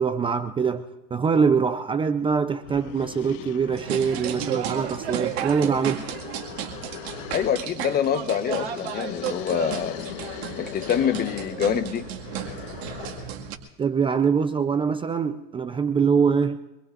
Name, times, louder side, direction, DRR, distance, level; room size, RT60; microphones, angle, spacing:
voice 1, 0.0-6.0 13.8-16.6, right 6 dB, 15° right, 0.6 m, -23 dB
sound 1, 2.2-2.3 2.6-13.4, left 12 dB, 60° left, 1.3 m, -40 dB
sound 2, 3.7-13.6, right 10 dB, 85° right, 2.1 m, -33 dB
voice 2, 7.3-10.0 10.6-12.1, left 8 dB, 30° left, 1.1 m, -25 dB
25.5 x 21.5 x 2.6 m
supercardioid pair, 130°, 31 cm